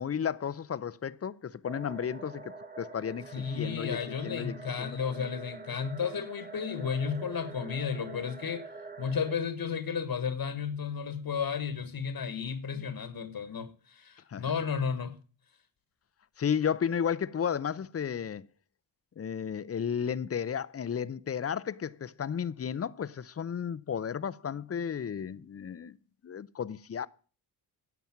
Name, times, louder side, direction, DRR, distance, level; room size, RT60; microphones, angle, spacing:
voice 1, 0.0-5.3 14.3-14.4 16.4-18.5 19.2-26.0 26.2-27.1, left 7 dB, 35° left, 0.7 m, -33 dB
sound 1, 1.6-9.4, right 3 dB, 20° right, 1.5 m, -46 dB
voice 2, 3.3-8.7 9.0-15.2, left 6 dB, 55° left, 1.4 m, -33 dB
10.5 x 7.0 x 7.3 m
cardioid pair, 60°, 43 cm